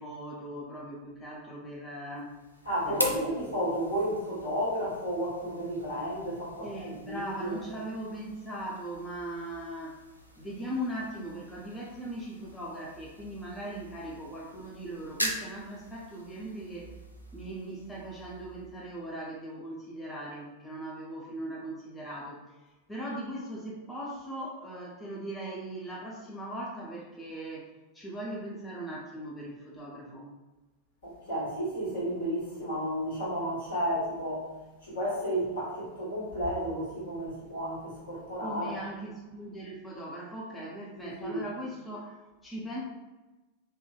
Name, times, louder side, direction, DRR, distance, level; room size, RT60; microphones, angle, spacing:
voice 1, 0.0-2.3 2.8-3.3 6.6-10.0 10.4-16.9 17.3-22.4 22.9-30.3 38.4-42.8, right 1 dB, 10° left, -4 dB, 0.5 m, -39 dB
sound 1, 2.1-19.1, equal, 90° left, 0.4 m, -42 dB
voice 2, 2.6-7.6 31.0-34.5 34.8-38.8 40.9-41.4, equal, 65° left, -7 dB, 1.3 m, -32 dB
3.2 x 2.1 x 2.4 m, 1.1 s
figure-of-eight pair, 90°, 0 cm